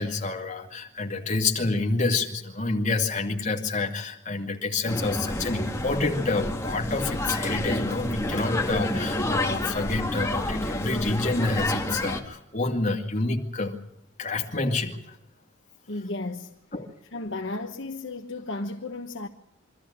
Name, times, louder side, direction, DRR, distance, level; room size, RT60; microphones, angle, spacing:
voice 1, 0.0-13.8 14.2-15.2 16.7-16.9, left 3 dB, 35° left, 2.3 m, -28 dB
Makarska City Life, 4.9-12.2, left 1 dB, 15° left, 1.8 m, -29 dB
voice 2, 15.9-16.5 17.1-19.3, left 2 dB, 60° left, 1.2 m, -34 dB
24.5 x 13.5 x 10.0 m
head